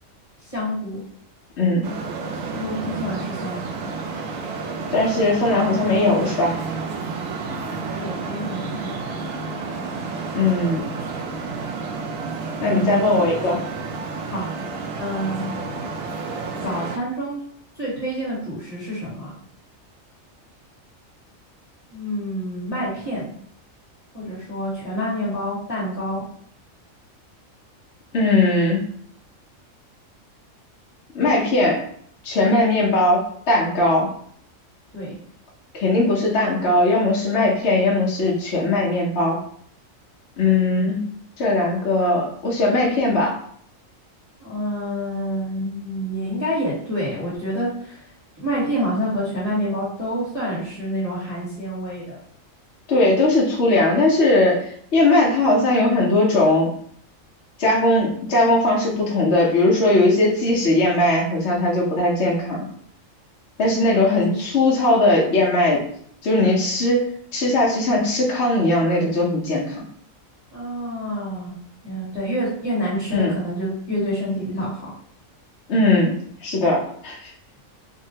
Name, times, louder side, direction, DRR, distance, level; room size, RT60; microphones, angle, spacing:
voice 1, 0.4-1.0 2.5-4.0 7.9-9.4 12.6-13.0 14.3-14.5 14.9-15.5 16.6-17.4 17.7-19.3 21.9-23.3 24.1-26.3 34.9-35.1 40.4-40.6 44.4-48.1 48.4-52.2 63.9-64.4 70.5-71.5 71.8-74.9, equal, 25° left, -9 dB, 1.4 m, -28 dB
voice 2, 1.6-1.9 4.9-6.5 10.3-10.8 12.6-13.6 28.1-28.8 31.1-31.8 32.2-34.1 35.7-39.4 40.4-41.0 41.4-43.4 52.9-56.7 57.6-62.7 63.6-65.8 66.2-67.0 67.3-69.8 73.1-73.3 75.7-76.1 76.4-77.3, left 2 dB, 60° left, -4 dB, 0.9 m, -19 dB
Traffic noise roadway noise, 1.8-17.0, right 4 dB, 80° right, 0.9 m, -30 dB
3.6 x 2.1 x 2.7 m, 0.62 s
omnidirectional pair, 1.4 m